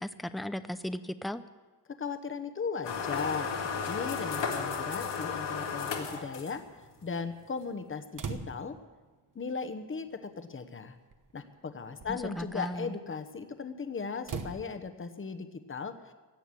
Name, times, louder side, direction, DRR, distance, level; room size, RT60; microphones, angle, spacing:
voice 1, 0.0-1.4 12.1-12.9, equal, ahead, 12 dB, 0.5 m, -36 dB
voice 2, 2.0-6.6 7.0-8.8 9.3-11.0 11.3-16.1, left 5 dB, 30° left, 9 dB, 1.0 m, -37 dB
sound 1, 2.8-6.8, left 5 dB, 90° left, 2.2 m, -34 dB
sound 2, 8.1-8.9 10.1-10.2 11.1-11.3 11.8-12.4 14.2-14.6, right 5 dB, 50° right, 1.2 m, -40 dB
16.5 x 9.2 x 8.4 m, 1.3 s
wide cardioid pair, 140°, 41 cm